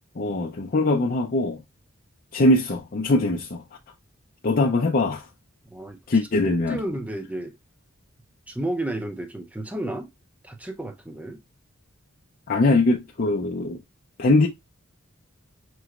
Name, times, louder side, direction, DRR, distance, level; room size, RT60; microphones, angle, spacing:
voice 1, 0.2-1.6 2.3-3.6 4.4-5.3 6.1-6.8 12.5-13.8 14.2-14.5, left 2 dB, 45° left, 0.5 m, -21 dB
voice 2, 5.7-6.0 6.7-7.5 8.5-10.1 10.4-11.4, right 1 dB, 5° right, 0.6 m, -32 dB
5.4 x 3.0 x 2.3 m
head